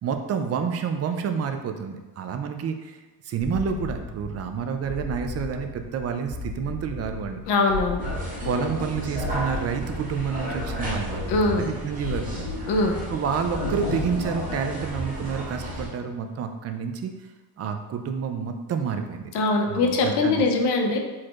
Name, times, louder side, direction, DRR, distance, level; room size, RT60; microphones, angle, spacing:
voice 1, 0.0-3.0 3.2-7.4 8.4-12.5 13.1-17.1 17.6-19.3 19.7-20.5, right 6 dB, 40° right, 6 dB, 0.4 m, -29 dB
sound 1, 3.4-14.8, left 3 dB, 65° right, 1.0 m, -36 dB
voice 2, 7.5-8.0 11.3-11.7 12.7-13.0 19.3-21.0, left 3 dB, 80° left, 2 dB, 0.7 m, -22 dB
sound 2, 8.0-15.9, equal, 20° right, 1.2 m, -32 dB
4.6 x 4.3 x 2.4 m, 1.2 s
cardioid pair, 145°, 40 cm